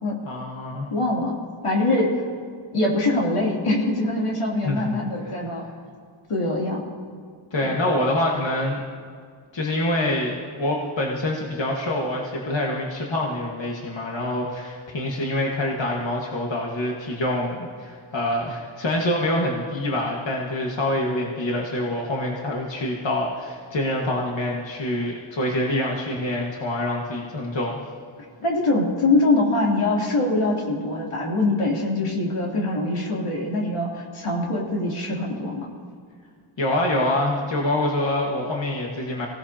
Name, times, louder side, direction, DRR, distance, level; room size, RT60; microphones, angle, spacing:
voice 1, 0.2-0.9 4.6-5.4 7.5-8.8 9.5-27.8 36.6-39.3, left 1 dB, 60° left, -2 dB, 1.7 m, -26 dB
voice 2, 0.9-1.3 1.6-2.2 2.7-5.6 6.3-6.8 7.6-7.7 28.4-35.7, left 2 dB, 90° left, -3 dB, 3.2 m, -23 dB
25.0 x 17.0 x 2.9 m, 2.1 s
wide cardioid pair, 95°, 50 cm